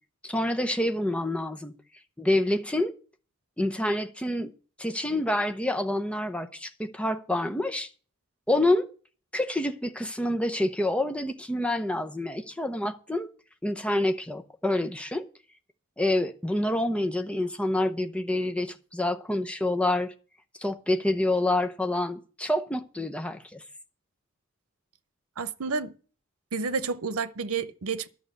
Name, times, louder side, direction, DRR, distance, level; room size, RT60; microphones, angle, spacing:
voice 1, 0.2-1.7 2.2-2.9 3.6-4.5 4.8-7.9 8.5-8.9 9.3-13.3 13.6-15.3 16.0-20.1 20.6-23.6, left 1 dB, 5° left, 0.8 m, -27 dB
voice 2, 25.4-25.9 26.5-28.1, right 5 dB, 85° right, 0.8 m, -30 dB
11.5 x 6.5 x 8.2 m
head